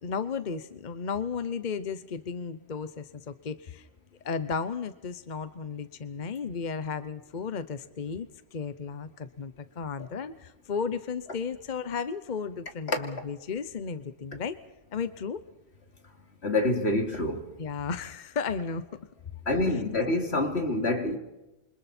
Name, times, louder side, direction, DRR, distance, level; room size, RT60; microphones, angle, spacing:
voice 1, 0.0-3.9 4.2-14.6 14.9-15.4 17.6-18.9 19.7-19.8, left 5 dB, 45° left, 1.0 m, -34 dB
voice 2, 16.4-17.4 19.5-21.2, left 2 dB, 80° left, 3.0 m, -26 dB
28.5 x 25.0 x 4.4 m
omnidirectional pair, 1.1 m